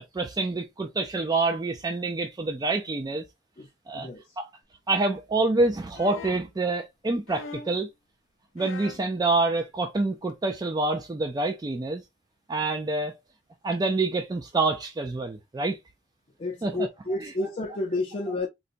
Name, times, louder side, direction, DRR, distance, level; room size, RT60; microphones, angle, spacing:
voice 1, 0.0-3.2 3.9-4.1 4.4-4.5 4.9-7.9 8.6-12.0 12.5-13.1 13.6-15.8 16.6-16.9, right 3 dB, 20° right, 0.3 m, -27 dB
voice 2, 3.9-4.4 16.4-18.5, left 2 dB, 35° left, 0.5 m, -31 dB
sound 1, 5.9-6.5 7.3-7.8 8.6-9.1 10.3-10.4, left 5 dB, 90° left, 0.6 m, -40 dB
3.9 x 2.2 x 2.5 m
head